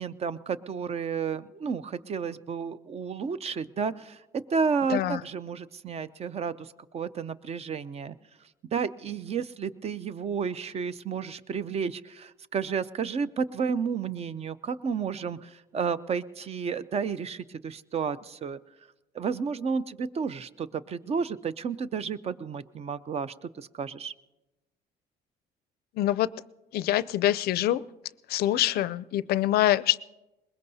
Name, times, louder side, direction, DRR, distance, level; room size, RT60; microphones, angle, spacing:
voice 1, 0.0-8.1 8.7-18.6 19.1-24.1, right 6 dB, 40° right, 16 dB, 0.5 m, -32 dB
voice 2, 4.9-5.2 26.0-26.3 26.7-27.8 28.3-30.0, left 13 dB, 65° left, 17 dB, 0.4 m, -25 dB
22.0 x 20.5 x 2.7 m, 1.0 s
cardioid pair, 110°, 17 cm